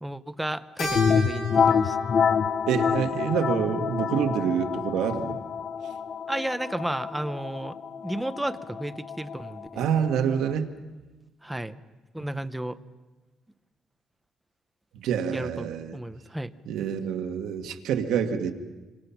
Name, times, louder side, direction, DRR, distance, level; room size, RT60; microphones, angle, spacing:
voice 1, 0.0-2.0 6.3-7.8 8.0-9.8 11.4-11.8 12.1-12.8 15.3-16.5, right 1 dB, 5° right, 10 dB, 0.7 m, -33 dB
Keyboard (musical), 0.8-5.4, left 1 dB, 60° left, 7.0 m, -37 dB
sound 1, 0.9-10.5, left 6 dB, 40° left, 0.8 m, -27 dB
voice 2, 2.7-5.4 9.7-10.7 14.9-16.0 16.7-18.5, right 8 dB, 75° right, 5 dB, 1.8 m, -27 dB
27.0 x 26.5 x 5.9 m, 1.2 s
cardioid pair, 170°, 0 cm